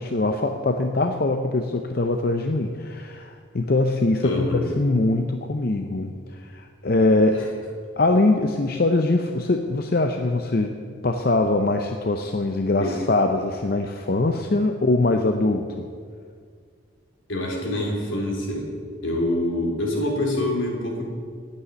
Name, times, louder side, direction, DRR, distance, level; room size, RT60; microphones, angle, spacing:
voice 1, 0.0-7.5 8.0-10.8 11.0-15.9, left 2 dB, 50° left, 5 dB, 0.6 m, -22 dB
voice 2, 4.2-4.7 12.8-13.0 17.3-18.7 19.0-21.0, left 1 dB, 80° left, -1 dB, 3.3 m, -25 dB
9.9 x 8.4 x 9.1 m, 2.1 s
head